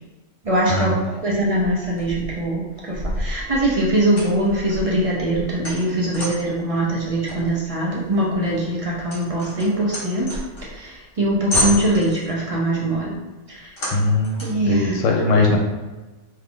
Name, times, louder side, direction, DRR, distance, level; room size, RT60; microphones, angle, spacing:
voice 1, 0.4-10.3 10.6-13.1 13.5-13.7 14.4-14.9, right 1 dB, 40° right, -5 dB, 0.5 m, -22 dB
sound 1, 1.5-2.4 2.9-6.6 7.3-10.8 11.2-11.3 11.5-12.3 13.8-14.7, left 1 dB, 50° left, 1.1 m, -29 dB
voice 2, 13.9-15.6, left 2 dB, 80° left, -1 dB, 0.9 m, -20 dB
2.7 x 2.4 x 3.5 m, 1.2 s
omnidirectional pair, 1.3 m